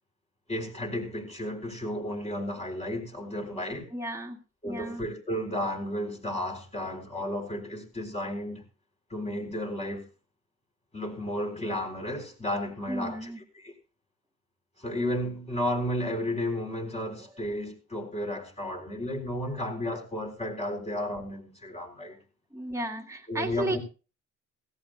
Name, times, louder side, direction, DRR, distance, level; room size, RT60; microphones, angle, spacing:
voice 1, 0.5-3.9 4.6-8.6 9.1-10.1 10.9-13.2 13.6-13.7 14.8-22.2 23.3-23.8, left 1 dB, 20° left, 4.0 m, -33 dB
voice 2, 3.9-4.4 4.6-5.0 12.9-13.4 22.5-23.8, right 1 dB, 10° right, 1.9 m, -33 dB
17.0 x 16.0 x 2.4 m
cardioid pair, 90°, 30 cm